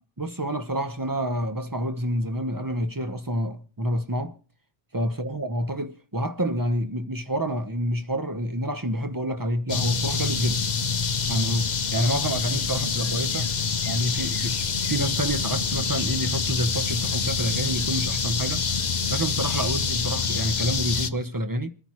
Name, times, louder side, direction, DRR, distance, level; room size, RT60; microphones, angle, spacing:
voice 1, 0.2-4.4 4.9-10.8 11.3-13.5 13.8-18.6 19.1-21.7, equal, 20° right, 0.9 m, -28 dB
sound 1, 9.7-21.1, left 5 dB, 45° left, 0.9 m, -26 dB
sound 2, 12.9-20.2, right 1 dB, 60° right, 7.5 m, -54 dB
29.0 x 10.0 x 3.1 m
omnidirectional pair, 1.2 m